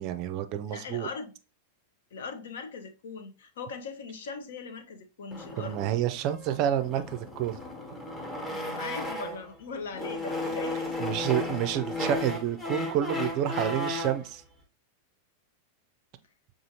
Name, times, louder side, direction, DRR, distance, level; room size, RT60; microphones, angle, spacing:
voice 1, 0.0-1.1 5.6-7.6 11.0-14.4, right 11 dB, 40° right, 0.4 m, -29 dB
voice 2, 0.7-1.3 2.1-5.8 8.5-11.0, left 4 dB, 60° left, 0.6 m, -40 dB
sound 1, 5.3-9.5 9.9-14.2, left 2 dB, 15° left, 0.9 m, -34 dB
6.1 x 2.4 x 2.8 m
figure-of-eight pair, 90°, 0 cm